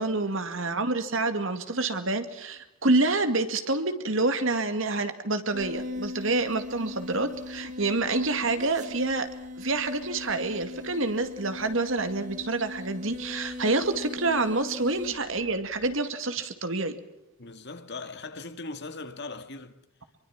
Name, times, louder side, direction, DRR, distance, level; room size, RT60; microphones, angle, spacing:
voice 1, 0.0-9.3 9.6-17.0, right 2 dB, 60° right, 2.2 m, -27 dB
sound 1, 5.5-16.0, left 2 dB, 35° right, 1.8 m, -39 dB
voice 2, 17.4-19.8, left 3 dB, 50° left, 1.9 m, -39 dB
25.0 x 23.5 x 6.0 m
head